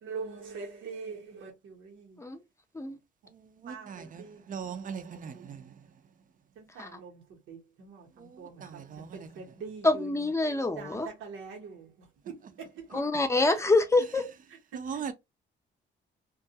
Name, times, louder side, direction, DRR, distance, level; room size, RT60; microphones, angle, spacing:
voice 1, 0.0-2.2 3.7-4.4 5.0-5.6 6.6-10.3 10.8-13.0 14.7-15.0, right 5 dB, 85° right, 1.0 m, -44 dB
voice 2, 3.6-5.6 8.2-8.3 8.6-9.3 14.7-15.1, right 6 dB, 45° right, 0.5 m, -39 dB
voice 3, 9.8-11.1 12.9-14.2, left 2 dB, 15° left, 0.6 m, -26 dB
2.3 x 2.2 x 2.7 m
cardioid pair, 90°, 20 cm